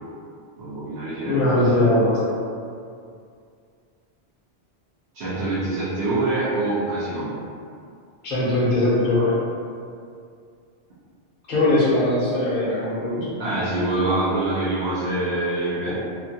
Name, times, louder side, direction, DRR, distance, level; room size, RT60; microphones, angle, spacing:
voice 1, 0.6-1.8 5.1-7.3 13.4-15.9, right 2 dB, 75° right, -10 dB, 1.0 m, -25 dB
voice 2, 1.2-2.2 8.2-9.4 11.5-13.3 15.9-16.0, left 1 dB, 50° left, -9 dB, 0.8 m, -20 dB
2.8 x 2.2 x 2.7 m, 2.3 s
omnidirectional pair, 1.1 m